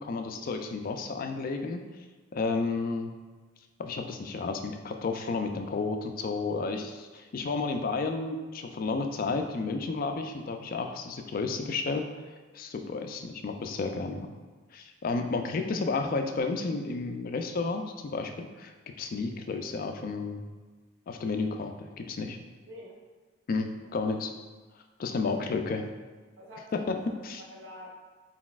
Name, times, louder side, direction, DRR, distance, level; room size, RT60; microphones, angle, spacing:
voice 1, 0.0-1.8 2.3-3.1 3.8-12.0 12.5-14.3 14.7-20.4 21.1-22.4 23.5-24.3 25.0-25.8 26.7-27.0 27.2-27.4, left 4 dB, 45° left, 5 dB, 0.3 m, -32 dB
voice 2, 15.1-15.5 22.7-23.0 23.8-23.9 25.3-25.8 26.4-27.2 27.5-27.9, left 1 dB, 70° right, -4 dB, 0.9 m, -48 dB
4.1 x 4.0 x 2.3 m, 1.4 s
head